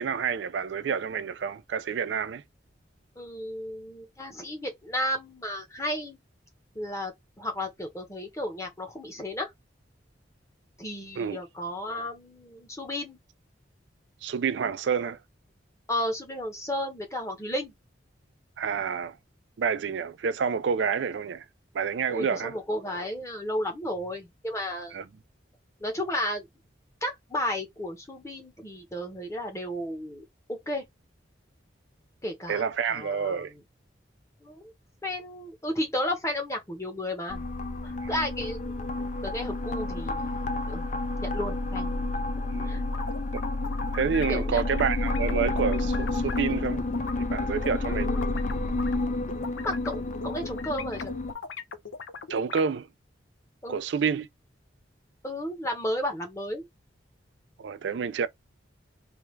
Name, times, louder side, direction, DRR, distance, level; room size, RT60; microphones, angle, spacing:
voice 1, 0.0-2.4 11.2-11.4 14.2-15.2 18.6-19.2 19.6-21.4 21.7-22.5 24.9-25.0 32.5-33.5 42.5-42.8 43.3-43.4 43.9-46.9 47.2-48.1 52.3-52.9 53.7-54.3 57.6-58.3, right 6 dB, 70° right, 0.4 m, -28 dB
voice 2, 3.2-6.2 6.7-7.1 7.4-9.5 10.8-13.2 15.9-17.7 22.1-25.0 25.8-26.5 27.0-30.8 32.2-33.6 34.4-34.7 35.0-37.4 37.8-40.9 41.2-42.0 42.6-42.8 44.3-44.6 47.8-48.6 49.6-51.1 53.6-53.8 55.2-56.7, left 1 dB, 15° left, 0.9 m, -33 dB
sound 1, 37.3-51.3, left 2 dB, 40° left, 0.4 m, -30 dB
sound 2, 42.8-47.1 47.6-52.6, left 5 dB, 90° left, 0.6 m, -39 dB
3.3 x 2.4 x 3.1 m
head